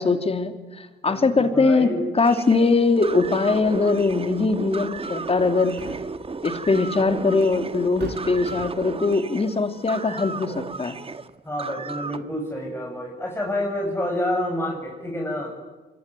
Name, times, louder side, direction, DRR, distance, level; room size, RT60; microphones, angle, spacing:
voice 1, 0.0-5.7 6.4-11.0, left 3 dB, 30° left, 8 dB, 3.3 m, -21 dB
voice 2, 1.1-2.0 11.5-15.5, left 1 dB, 10° left, 0 dB, 7.3 m, -28 dB
sound 1, 2.2-12.2, right 4 dB, 30° right, 1.8 m, -34 dB
sound 2, 4.4-4.5 5.5-6.3 7.3-7.4 8.0-9.0, right 5 dB, 60° right, 6.7 m, -39 dB
25.5 x 23.5 x 9.6 m, 1.3 s
cardioid pair, 90°, 20 cm